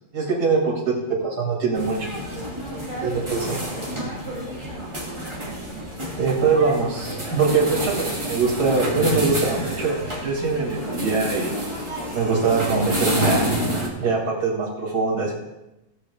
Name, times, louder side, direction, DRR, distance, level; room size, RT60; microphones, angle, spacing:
voice 1, 0.1-2.1 3.0-3.6 6.2-10.0 10.2-11.5 12.1-13.5 14.0-15.3, right 4 dB, 90° right, -3 dB, 2.8 m, -22 dB
voice 2, 0.8-1.3 2.5-4.9, right 2 dB, 30° left, -6 dB, 2.5 m, -37 dB
sound 1, 1.7-13.9, right 1 dB, 20° right, 2.2 m, -29 dB
16.0 x 7.5 x 3.5 m, 0.95 s
omnidirectional pair, 1.7 m